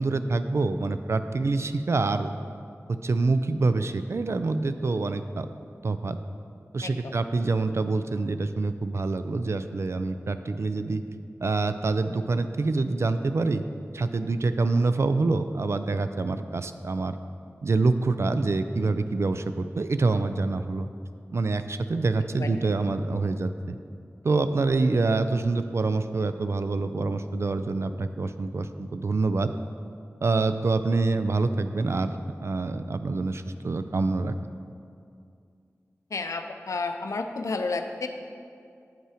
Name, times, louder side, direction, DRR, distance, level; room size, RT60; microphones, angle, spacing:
voice 1, 0.0-2.3 2.9-5.5 5.8-6.2 6.7-11.0 11.4-13.6 13.9-17.2 17.6-20.9 21.3-23.8 24.2-29.5 30.2-34.3, right 3 dB, 60° right, 10 dB, 0.3 m, -26 dB
voice 2, 36.1-38.1, left 3 dB, 80° left, 6 dB, 0.5 m, -31 dB
7.6 x 5.4 x 4.9 m, 2.4 s
cardioid pair, 45°, 5 cm